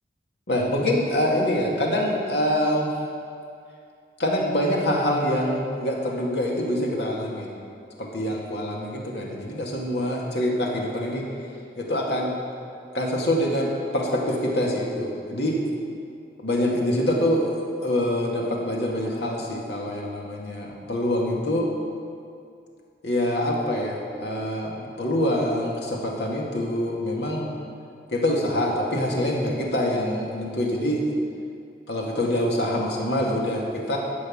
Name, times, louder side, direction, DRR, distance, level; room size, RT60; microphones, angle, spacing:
voice 1, 0.5-2.9 4.2-7.5 8.0-11.3 11.8-12.3 12.9-15.6 16.4-21.7 23.0-27.5 28.1-31.0 31.9-34.0, left 1 dB, 75° left, -2 dB, 2.1 m, -25 dB
13.0 x 5.6 x 8.7 m, 2.4 s
head